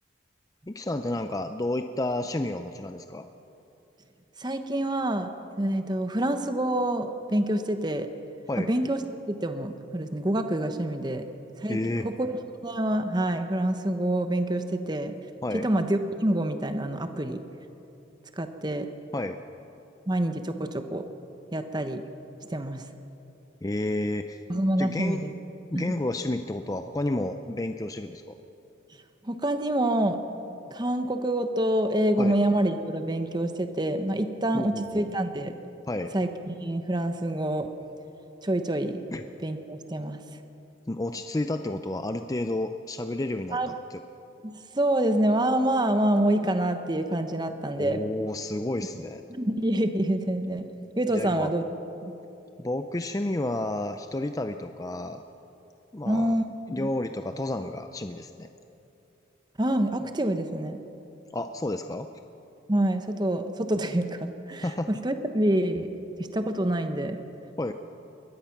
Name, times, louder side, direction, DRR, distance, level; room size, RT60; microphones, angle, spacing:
voice 1, 0.7-3.3 8.5-8.7 11.7-12.1 15.4-15.7 19.1-19.4 23.6-24.4 24.8-25.2 25.7-28.4 32.2-32.3 34.5-35.1 35.9-36.1 39.1-39.2 40.9-44.0 47.8-49.2 51.1-51.5 52.6-55.2 55.9-58.5 61.3-62.1 64.6-64.9 67.6-67.7, left 1 dB, 20° left, 8 dB, 0.5 m, -31 dB
voice 2, 4.4-5.3 5.6-8.1 8.6-9.0 9.3-11.3 11.6-12.3 12.6-15.1 15.6-17.4 18.4-18.9 20.1-21.0 21.5-22.0 22.5-22.8 24.5-25.3 25.7-25.9 29.2-30.2 30.7-35.6 36.1-37.7 38.4-39.0 39.4-40.2 43.5-43.7 44.4-48.0 49.3-50.7 51.0-51.6 52.0-52.1 56.0-56.4 56.8-56.9 59.6-60.8 62.7-65.9 66.2-67.2, right 1 dB, 20° right, 8 dB, 0.9 m, -27 dB
22.5 x 19.5 x 5.9 m, 2.9 s
head